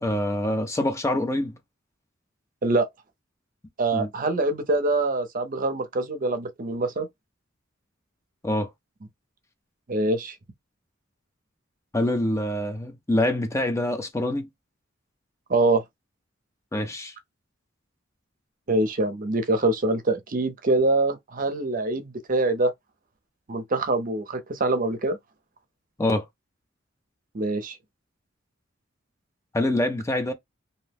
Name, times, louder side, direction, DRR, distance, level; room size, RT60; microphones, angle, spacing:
voice 1, 0.0-1.5 3.9-4.1 8.4-8.7 11.9-14.5 16.7-17.1 26.0-26.3 29.5-30.3, left 1 dB, 15° left, 0.4 m, -25 dB
voice 2, 3.8-7.1 9.9-10.3 15.5-15.8 18.7-22.7 23.5-25.2 27.3-27.8, right 2 dB, 45° right, 0.6 m, -24 dB
2.6 x 2.0 x 3.3 m
head